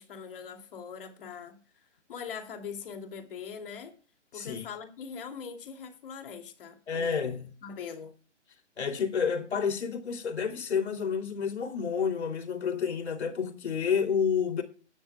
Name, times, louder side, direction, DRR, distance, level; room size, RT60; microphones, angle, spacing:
voice 1, 0.0-1.6 2.1-3.9 4.3-7.4 7.6-8.1, left 6 dB, 50° left, 2.8 m, -42 dB
voice 2, 4.3-4.6 6.9-7.5 8.8-14.6, left 6 dB, 65° left, 3.1 m, -29 dB
18.5 x 12.0 x 2.3 m
hypercardioid pair, 155°, 36 cm